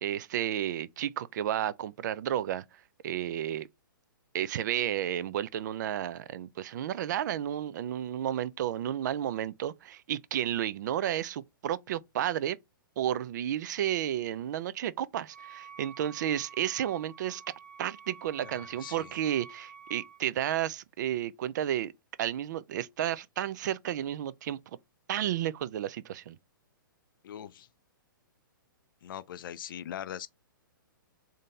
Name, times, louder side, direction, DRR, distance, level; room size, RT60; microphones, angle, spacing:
voice 1, 0.0-2.6 3.0-3.7 4.3-12.6 13.0-17.4 17.8-21.9 22.2-24.6 25.1-26.4, right 11 dB, 55° right, 0.4 m, -32 dB
Wind instrument woodwind instrument, 15.3-20.2, right 7 dB, 5° left, 1.2 m, -49 dB
voice 2, 18.4-19.1 27.2-27.7 29.0-30.3, left 10 dB, 70° left, 0.4 m, -41 dB
3.7 x 2.7 x 4.3 m
hypercardioid pair, 140°, 12 cm